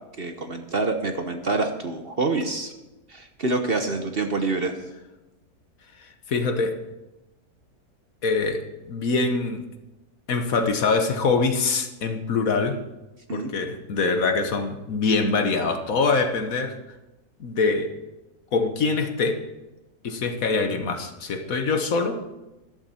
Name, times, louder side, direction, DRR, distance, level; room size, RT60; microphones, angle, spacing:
voice 1, 0.2-2.7 3.1-4.7 13.3-13.5, right 3 dB, 40° right, 6 dB, 1.1 m, -26 dB
voice 2, 6.3-6.8 8.2-8.6 8.9-9.6 10.3-12.8 13.3-16.8 17.4-17.9 18.5-19.4 20.0-22.2, left 4 dB, 65° left, 7 dB, 1.5 m, -24 dB
13.5 x 12.0 x 4.3 m, 1.0 s
omnidirectional pair, 1.6 m